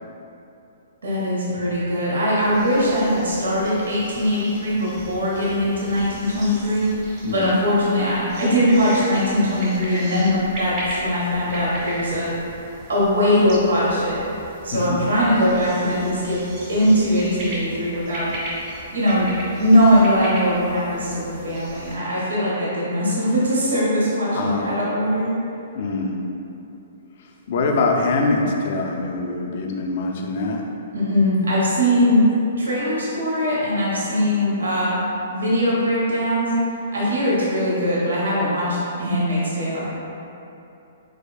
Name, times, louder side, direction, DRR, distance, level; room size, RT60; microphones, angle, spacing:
voice 1, 1.0-10.7 11.0-12.3 12.9-14.2 14.6-16.4 16.7-18.3 18.9-19.3 19.6-25.3 30.9-32.2 32.6-35.0 35.3-36.5 36.9-39.9, equal, 75° right, -7 dB, 1.3 m, -21 dB
sound 1, 2.4-22.0, right 1 dB, 40° right, 1.4 m, -37 dB
voice 2, 24.3-24.7 25.7-26.1 27.5-30.6, left 3 dB, 55° left, 1 dB, 0.5 m, -23 dB
4.8 x 4.3 x 2.3 m, 2.8 s
hypercardioid pair, 125°, 0 cm